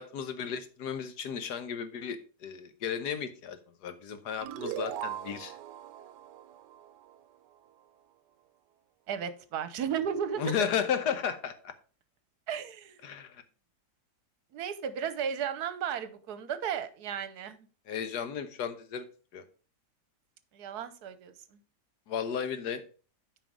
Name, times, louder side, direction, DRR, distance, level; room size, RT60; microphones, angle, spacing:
voice 1, 0.0-5.6 10.4-11.7 13.0-13.4 17.9-19.1 19.3-19.4 22.1-22.8, left 7 dB, 75° left, 1.5 m, -34 dB
sound 1, 4.4-7.6, right 11 dB, 85° right, 1.2 m, -40 dB
voice 2, 9.1-10.5 12.5-13.0 14.5-17.6 20.5-21.6, right 8 dB, 70° right, 1.4 m, -34 dB
9.1 x 4.9 x 4.9 m
omnidirectional pair, 1.8 m